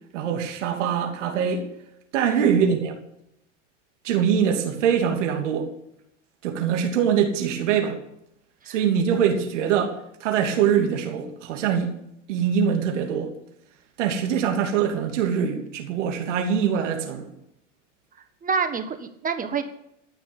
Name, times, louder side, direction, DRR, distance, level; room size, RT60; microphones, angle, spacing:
voice 1, 0.1-1.7 2.1-2.9 4.0-5.7 6.4-8.0 8.7-11.9 12.3-13.3 14.0-17.3, right 7 dB, 75° right, 3 dB, 2.9 m, -23 dB
voice 2, 18.4-19.6, right 5 dB, 20° right, 8 dB, 1.5 m, -27 dB
14.0 x 6.2 x 9.6 m, 0.79 s
hypercardioid pair, 110°, 37 cm